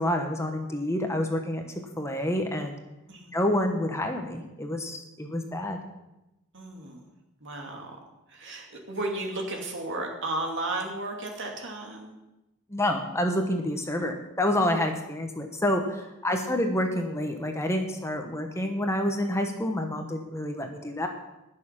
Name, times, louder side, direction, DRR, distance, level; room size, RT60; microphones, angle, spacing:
voice 1, 0.0-1.6 2.0-2.7 3.3-5.8 12.7-21.1, left 1 dB, 15° left, 4 dB, 1.1 m, -28 dB
voice 2, 3.1-3.4 6.5-7.0 7.4-8.0 8.3-12.1 16.4-16.6, right 2 dB, 55° right, 2 dB, 2.5 m, -34 dB
20.0 x 6.7 x 5.9 m, 0.95 s
head